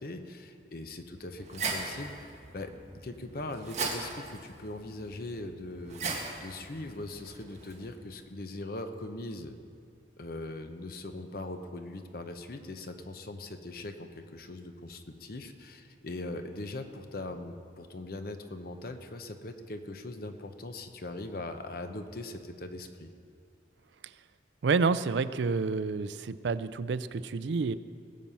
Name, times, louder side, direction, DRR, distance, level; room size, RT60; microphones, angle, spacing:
voice 1, 0.0-6.1 6.4-9.5 10.2-23.1, left 2 dB, 55° left, 7 dB, 0.8 m, -41 dB
sound 1, 1.1-7.9, right 4 dB, 40° right, 1.8 m, -39 dB
voice 2, 24.6-27.7, right 4 dB, 75° right, 14 dB, 0.4 m, -29 dB
19.5 x 7.4 x 5.5 m, 2.3 s
head